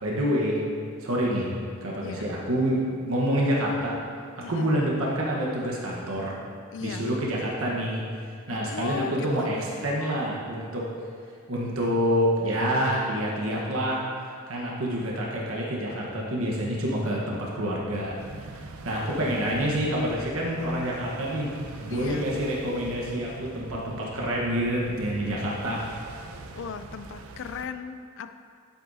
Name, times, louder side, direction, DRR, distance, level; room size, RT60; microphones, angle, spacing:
voice 1, 0.0-0.6 1.0-1.5 1.8-4.0 4.5-6.4 6.8-8.0 8.5-10.9 11.5-14.0 14.5-18.6 18.8-21.5 21.8-25.8, equal, 75° right, -4 dB, 1.3 m, -27 dB
voice 2, 4.4-4.8 6.7-7.1 8.5-9.6 21.9-22.3 26.5-28.3, left 6 dB, 60° left, 10 dB, 0.4 m, -37 dB
sound 1, 17.9-27.7, right 3 dB, 90° right, 0.6 m, -43 dB
11.0 x 8.5 x 2.8 m, 2.2 s
head